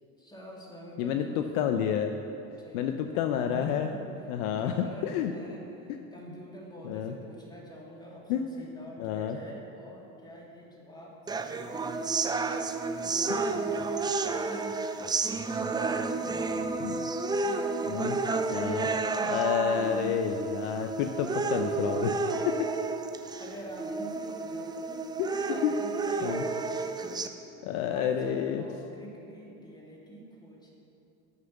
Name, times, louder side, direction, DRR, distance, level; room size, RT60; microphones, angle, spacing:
voice 1, 0.2-1.5 2.4-3.2 3.5-11.9 13.0-14.7 15.8-18.6 23.4-26.9 27.8-30.8, equal, 10° left, -3 dB, 2.5 m, -47 dB
voice 2, 1.0-2.1 2.7-3.9 4.3-5.3 6.8-7.1 8.3-8.4 9.0-9.4 16.8-17.0 17.9-18.2 18.5-18.9 19.2-22.1 22.5-22.7 25.2-25.8 26.2-26.4 27.6-28.6, left 9 dB, 70° left, 6 dB, 0.7 m, -29 dB
sound 1, 11.3-27.3, right 3 dB, 10° right, 0.3 m, -31 dB
11.0 x 6.8 x 5.8 m, 2.8 s
hypercardioid pair, 90°, 44 cm